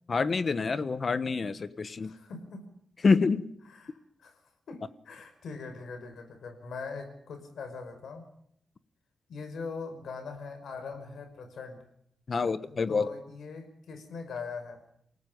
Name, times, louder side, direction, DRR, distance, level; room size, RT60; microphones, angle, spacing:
voice 1, 0.1-2.1 3.0-3.5 12.3-13.1, left 4 dB, 40° left, 15 dB, 1.2 m, -27 dB
voice 2, 2.0-2.7 3.7-4.4 4.7-8.3 9.3-11.8 12.3-14.8, left 4 dB, 75° left, 8 dB, 5.5 m, -42 dB
28.5 x 18.0 x 5.3 m, 0.71 s
wide cardioid pair, 155°, 0 cm